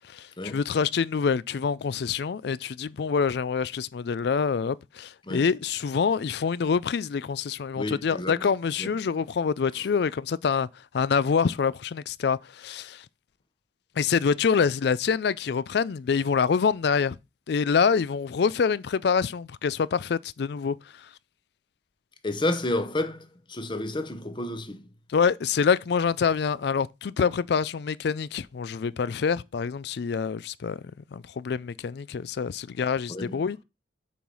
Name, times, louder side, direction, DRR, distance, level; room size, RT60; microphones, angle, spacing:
voice 1, 0.1-10.7 10.9-13.0 14.0-17.2 17.5-20.8 25.1-30.8 31.1-33.6, left 6 dB, 60° left, 0.4 m, -26 dB
voice 2, 7.8-8.5 8.8-8.9 22.2-24.9 33.1-33.4, left 1 dB, 25° left, 0.8 m, -30 dB
7.1 x 4.8 x 5.4 m
head